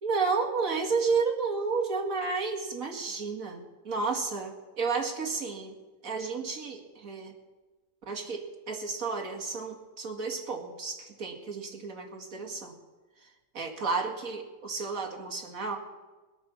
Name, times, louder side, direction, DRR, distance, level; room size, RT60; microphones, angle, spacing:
voice 1, 0.0-5.8 6.0-7.3 8.1-12.7 13.5-15.8, right 4 dB, 50° right, 2 dB, 2.3 m, -32 dB
20.0 x 8.9 x 6.9 m, 1.3 s
omnidirectional pair, 1.8 m